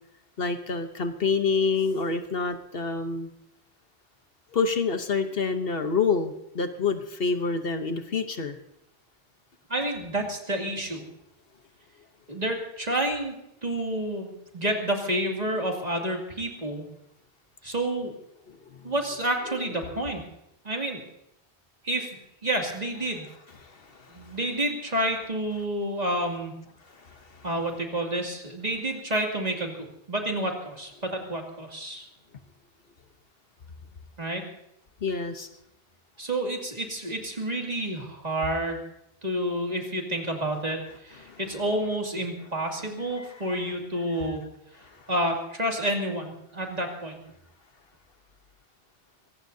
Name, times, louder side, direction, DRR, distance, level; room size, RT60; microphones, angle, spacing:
voice 1, 0.4-3.3 4.5-8.6 18.5-18.9 19.9-20.0 23.6-24.4 27.0-27.5 35.0-35.5 41.2-41.4 43.2-43.3 44.2-44.3, left 4 dB, 60° left, 7 dB, 1.2 m, -28 dB
voice 2, 9.7-11.0 12.3-13.4 13.6-16.9 17.6-18.1 18.8-20.2 20.6-21.0 21.8-22.1 22.4-23.3 24.1-26.5 27.4-32.1 34.2-34.4 36.2-38.8 39.2-44.4 45.1-47.2, right 1 dB, 40° right, 1 dB, 2.6 m, -29 dB
24.0 x 18.0 x 2.7 m, 0.81 s
omnidirectional pair, 1.1 m